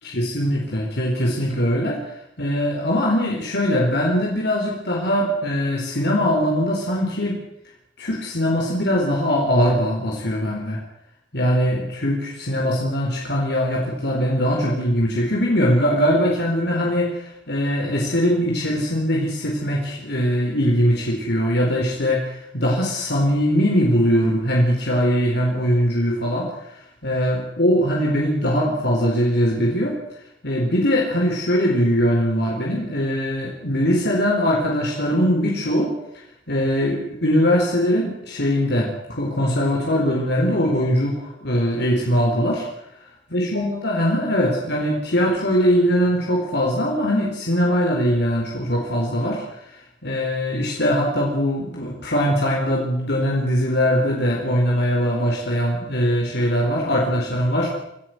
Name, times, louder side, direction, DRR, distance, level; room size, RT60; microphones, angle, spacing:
voice 1, 0.0-2.0 2.4-7.4 8.0-10.8 11.3-29.9 30.4-35.9 36.5-42.6 43.3-49.7 50.0-57.7, equal, 65° left, -1 dB, 4.3 m, -21 dB
27.0 x 15.5 x 8.0 m, 0.82 s
head